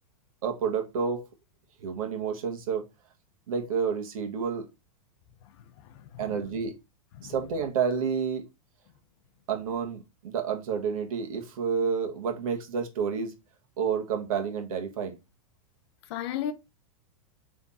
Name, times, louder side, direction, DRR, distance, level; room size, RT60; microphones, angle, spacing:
voice 1, 0.4-1.2 1.8-2.8 3.5-4.7 6.2-6.7 7.2-8.4 9.5-13.3 13.8-15.2, right 6 dB, 70° right, 1.5 m, -29 dB
voice 2, 5.4-6.4 7.2-7.3 16.1-16.5, left 10 dB, 45° left, 0.6 m, -36 dB
3.6 x 3.5 x 4.1 m
supercardioid pair, 150°, 19 cm